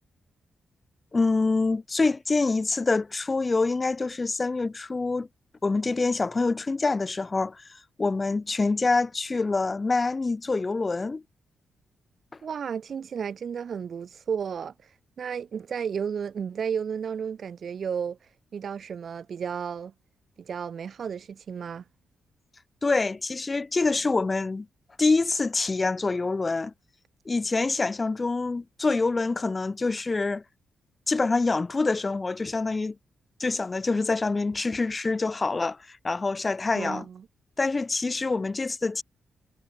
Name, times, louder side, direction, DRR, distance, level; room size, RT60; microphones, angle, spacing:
voice 1, 1.1-5.3 5.6-11.2 22.8-24.7 25.0-26.7 27.3-30.4 31.1-32.9 33.4-37.1 37.6-39.0, left 3 dB, 20° left, 0.9 m, -26 dB
voice 2, 12.4-14.7 15.2-18.2 18.5-19.9 20.4-21.8 36.8-37.3, right 7 dB, 50° right, 0.5 m, -33 dB
wide cardioid pair, 150°, 0 cm